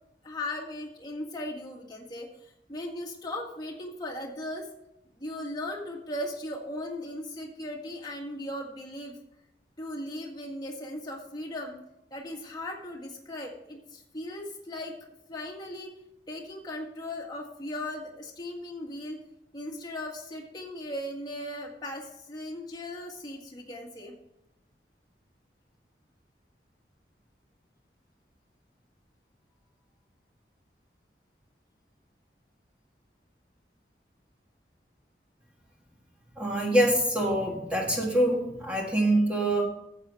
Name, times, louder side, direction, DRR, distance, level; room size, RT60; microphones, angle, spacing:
voice 1, 0.2-4.7 5.2-9.2 9.8-11.8 12.1-14.9 15.3-15.9 16.3-19.2 19.5-24.1, left 1 dB, 25° left, 0 dB, 1.7 m, -37 dB
voice 2, 36.4-39.7, right 1 dB, 5° right, -1 dB, 1.7 m, -25 dB
12.5 x 8.0 x 3.5 m, 0.85 s
head